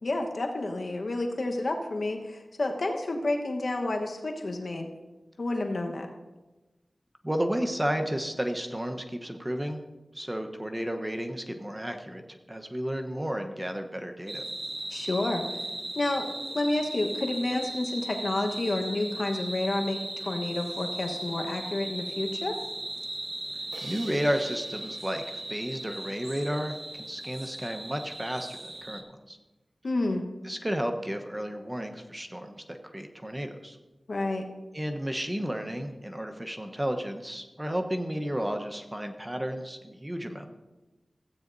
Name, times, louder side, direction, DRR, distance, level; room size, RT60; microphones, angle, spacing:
voice 1, 0.0-4.9 5.4-6.1 14.9-15.5 15.9-22.6 29.8-30.2 34.1-34.5, left 2 dB, 70° left, 2 dB, 1.2 m, -30 dB
voice 2, 7.2-9.8 10.1-14.4 23.8-29.4 30.4-33.8 34.7-40.5, equal, 15° right, 5 dB, 1.0 m, -32 dB
sound 1, 14.3-29.0, right 1 dB, 40° right, 1.2 m, -37 dB
Crash cymbal, 23.7-26.8, right 3 dB, 90° right, 0.7 m, -50 dB
15.5 x 8.6 x 2.7 m, 1.1 s
cardioid pair, 45°, 0 cm